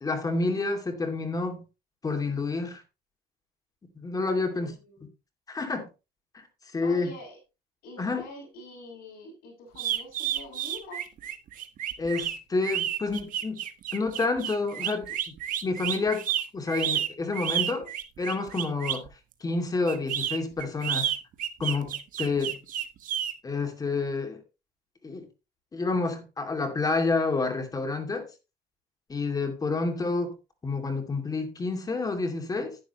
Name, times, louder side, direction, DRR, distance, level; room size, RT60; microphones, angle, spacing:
voice 1, 0.0-1.6 2.0-2.8 4.0-4.7 5.5-5.9 6.3-6.4 6.7-7.1 8.0-8.2 12.0-13.6 13.9-15.4 15.6-16.2 16.5-17.9 18.2-19.1 19.4-21.1 21.6-22.6 23.4-24.4 25.0-25.3 25.7-28.3 29.1-30.3 30.6-32.8, left 3 dB, 25° left, 2.5 m, -29 dB
voice 2, 4.3-5.1 6.8-7.4 7.8-11.1, left 2 dB, 85° left, 5.7 m, -45 dB
sound 1, 9.7-19.1 19.9-23.3, right 11 dB, 60° right, 1.3 m, -30 dB
10.5 x 10.0 x 3.0 m
cardioid pair, 125°, 15 cm